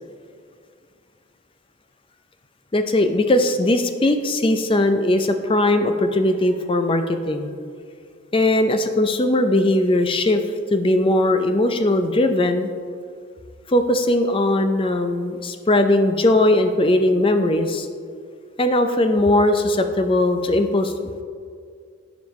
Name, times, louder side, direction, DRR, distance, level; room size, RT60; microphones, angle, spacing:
voice 1, 2.7-7.5 8.3-10.4 10.7-12.7 13.7-17.9 18.6-20.9, left 1 dB, 25° left, 7 dB, 0.5 m, -19 dB
15.0 x 5.2 x 3.1 m, 2.2 s
head